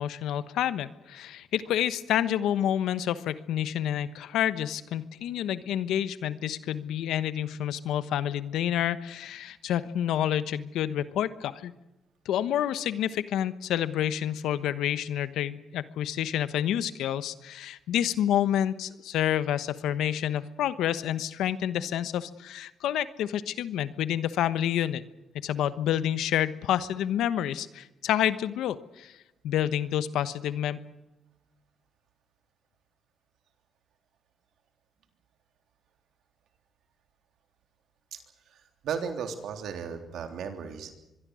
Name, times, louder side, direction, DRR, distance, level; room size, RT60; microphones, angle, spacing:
voice 1, 0.0-11.7 12.2-25.0 25.3-29.2 29.4-30.8, left 11 dB, 85° left, 14 dB, 1.1 m, -28 dB
voice 2, 38.5-40.9, right 7 dB, 80° right, 6 dB, 3.4 m, -35 dB
24.5 x 23.0 x 6.4 m, 0.99 s
cardioid pair, 75°, 0 cm